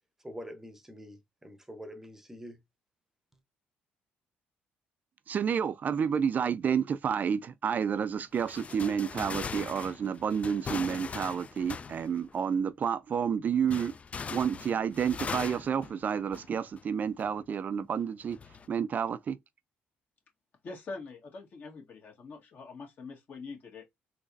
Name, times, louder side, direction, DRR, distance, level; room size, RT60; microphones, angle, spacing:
voice 1, 0.2-2.6, equal, 10° right, 0.8 m, -45 dB
voice 2, 5.3-13.9 14.3-18.4 18.7-19.4, right 7 dB, 45° right, 0.3 m, -30 dB
sound 1, 8.3-12.4 13.7-16.8 17.2-17.3 18.3-18.7, left 5 dB, 35° left, 0.4 m, -40 dB
voice 3, 20.6-23.9, left 4 dB, 55° left, 1.7 m, -44 dB
3.9 x 2.9 x 2.5 m
cardioid pair, 85°, 4 cm